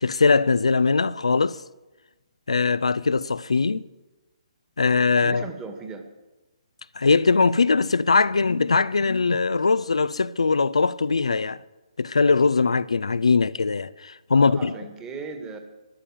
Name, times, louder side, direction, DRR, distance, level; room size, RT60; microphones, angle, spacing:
voice 1, 0.0-1.6 2.5-3.9 4.8-5.4 7.0-11.6 12.0-14.7, left 4 dB, 70° left, 0.5 m, -21 dB
voice 2, 5.2-6.1 14.3-15.6, right 4 dB, 15° right, 1.8 m, -37 dB
13.0 x 11.5 x 7.5 m
figure-of-eight pair, 135°, 3 cm